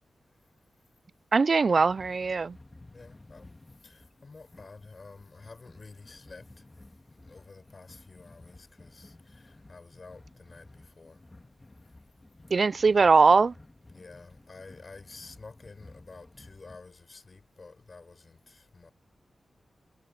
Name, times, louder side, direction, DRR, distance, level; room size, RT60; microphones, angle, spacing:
voice 1, 1.3-2.5 12.5-13.5, right 4 dB, 50° right, 0.4 m, -21 dB
sound 1, 1.8-16.8, left 2 dB, 20° left, 2.9 m, -54 dB
voice 2, 2.9-6.7 7.1-11.2 13.9-18.9, left 3 dB, 45° left, 7.0 m, -50 dB
wide cardioid pair, 90°, 0 cm